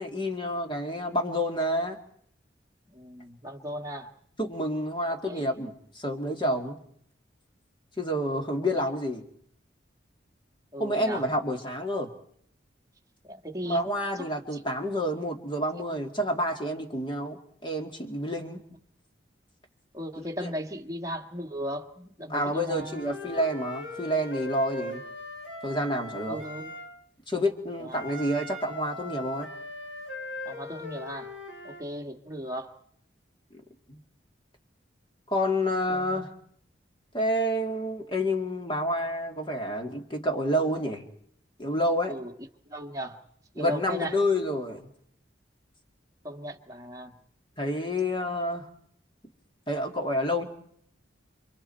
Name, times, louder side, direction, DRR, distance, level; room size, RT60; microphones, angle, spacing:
voice 1, 0.0-2.0 4.4-6.8 8.0-9.2 10.8-12.1 13.6-18.6 20.2-20.5 22.3-25.0 25.6-26.4 27.3-29.5 33.5-33.6 33.9-34.0 35.3-36.3 37.1-41.0 41.6-42.1 43.6-44.9 47.6-48.7 49.7-50.5, equal, 25° left, 4 dB, 2.3 m, -29 dB
voice 2, 2.9-4.1 5.2-5.4 10.7-11.2 13.3-13.8 14.2-14.6 19.9-23.0 26.3-26.7 27.8-28.0 30.4-31.3 31.6-32.7 35.9-36.2 42.1-42.3 42.7-43.2 43.5-44.2 46.2-47.1, equal, 15° right, 1 dB, 1.7 m, -37 dB
Wind instrument woodwind instrument, 22.7-26.9 27.9-31.8, left 2 dB, 80° left, 4.9 m, -39 dB
29.5 x 25.5 x 4.4 m, 0.66 s
head